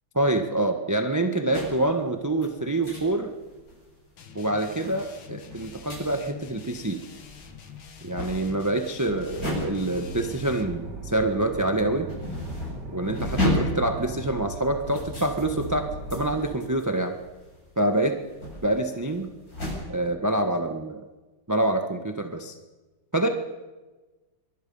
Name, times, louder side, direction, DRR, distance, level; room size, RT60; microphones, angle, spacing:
voice 1, 0.1-3.3 4.3-7.0 8.0-12.1 12.9-17.2 17.8-18.2 18.6-19.3 19.9-21.0 21.5-22.5 23.1-23.3, right 1 dB, 10° right, 5 dB, 0.8 m, -26 dB
sound 1, 1.5-1.9 2.3-3.1 3.4-3.9 4.4-11.3 11.6-19.7, left 1 dB, 40° left, 8.4 m, -34 dB
sound 2, 4.2-10.8, left 7 dB, 65° left, 2.4 m, -46 dB
sound 3, 9.1-16.6, right 2 dB, 50° right, 2.6 m, -38 dB
24.5 x 23.0 x 5.5 m, 1.2 s
omnidirectional pair, 2.3 m